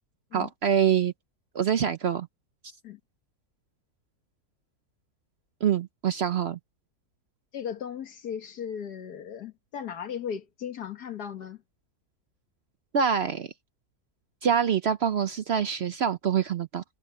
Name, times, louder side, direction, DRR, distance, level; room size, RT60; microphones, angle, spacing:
voice 1, 0.3-1.1 1.5-2.3 5.6-6.6 12.9-13.5 14.4-16.8, right 8 dB, 55° right, 0.7 m, -25 dB
voice 2, 7.5-11.6, left 8 dB, 85° left, 2.0 m, -36 dB
omnidirectional pair, 1.6 m